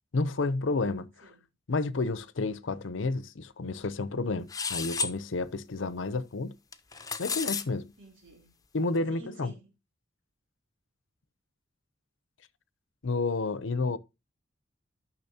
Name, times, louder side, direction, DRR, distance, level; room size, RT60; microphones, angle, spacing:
voice 1, 0.1-1.3 1.7-6.5 7.2-7.9 8.7-9.5 13.0-14.0, left 3 dB, 80° left, 0.7 m, -30 dB
sound 1, 4.5-5.1 6.7-7.6, left 5 dB, 20° left, 0.7 m, -32 dB
voice 2, 8.0-8.6 9.1-9.7 13.8-14.0, right 1 dB, 85° right, 2.9 m, -51 dB
12.5 x 6.2 x 2.8 m
head